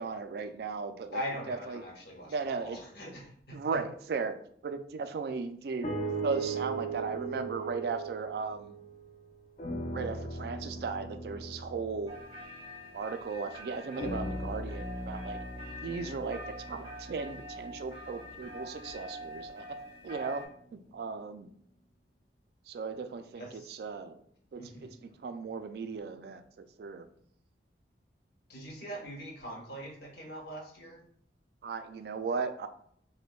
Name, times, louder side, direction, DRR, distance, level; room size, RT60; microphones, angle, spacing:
voice 1, 0.0-1.2 1.5-1.8 2.3-2.8 3.5-4.3 4.6-8.8 9.9-12.2 12.9-15.4 15.8-19.7 20.0-20.4 20.7-21.5 22.7-24.2 24.5-24.9 25.2-26.4 26.8-27.0 31.6-32.7, right 4 dB, 60° right, 9 dB, 0.3 m, -36 dB
voice 2, 1.1-3.8 23.3-23.7 24.6-24.9 28.5-31.0, equal, 60° left, -2 dB, 1.1 m, -42 dB
sound 1, 5.8-9.2 9.6-13.3 14.0-18.2 18.8-18.9, right 3 dB, 40° left, 0.5 m, -38 dB
sound 2, 12.1-20.5, equal, 30° right, 0.9 m, -46 dB
5.0 x 2.1 x 2.2 m, 0.64 s
head